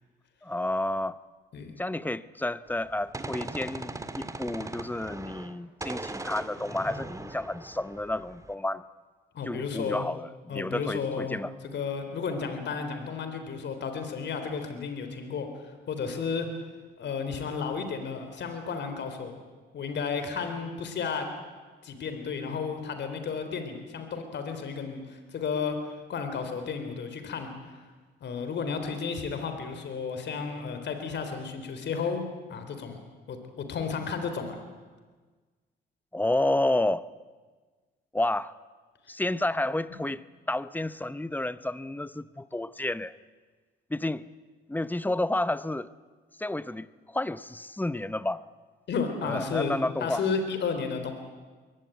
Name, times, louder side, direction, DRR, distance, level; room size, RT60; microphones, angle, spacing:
voice 1, 0.4-1.2 1.8-8.8 9.4-11.5 36.1-37.1 38.1-38.5 39.1-43.1 43.9-44.2 44.7-45.9 46.4-48.4 49.2-50.2, left 1 dB, 10° left, 0.8 m, -30 dB
Gunshot gunfire, 2.7-5.6 5.8-8.5, right 2 dB, 15° right, 1.8 m, -39 dB
voice 2, 9.3-10.0 10.5-11.4 11.7-16.5 17.0-19.4 19.7-21.3 21.8-25.8 26.1-27.8 28.2-32.2 32.5-33.0 33.3-34.6 48.9-51.1, left 5 dB, 60° left, 3.8 m, -33 dB
23.0 x 18.5 x 9.2 m
cardioid pair, 90°, 20 cm